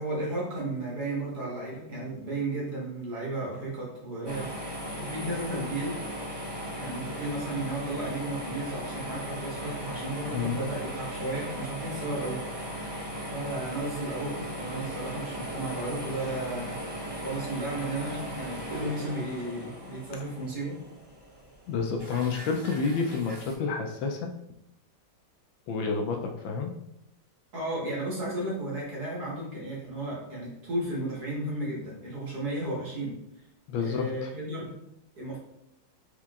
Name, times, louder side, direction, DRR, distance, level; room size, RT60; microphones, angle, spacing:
voice 1, 0.0-6.1 6.7-12.9 13.3-16.8 17.1-20.8 27.5-33.2 33.8-34.7 35.2-35.4, right 2 dB, 50° right, -5 dB, 1.9 m, -34 dB
sound 1, 4.2-23.5, equal, 30° right, 0.4 m, -38 dB
voice 2, 10.3-10.6 21.7-24.3 25.7-26.7 33.7-34.3, left 5 dB, 75° left, 3 dB, 1.2 m, -29 dB
4.4 x 4.4 x 2.4 m, 0.82 s
omnidirectional pair, 2.2 m